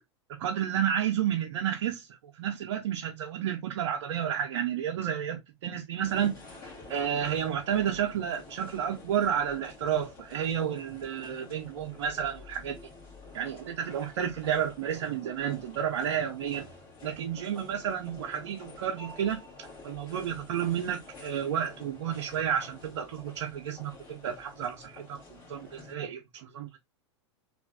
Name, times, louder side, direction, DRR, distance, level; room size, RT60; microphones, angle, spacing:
voice 1, 0.4-2.1 2.4-6.3 6.9-12.8 13.3-16.7 17.0-19.4 19.8-25.2 25.5-26.8, right 9 dB, 70° right, 0.6 m, -31 dB
sound 1, 6.0-25.9, left 3 dB, 35° left, 1.9 m, -49 dB
3.3 x 2.5 x 2.3 m
hypercardioid pair, 105°, 15 cm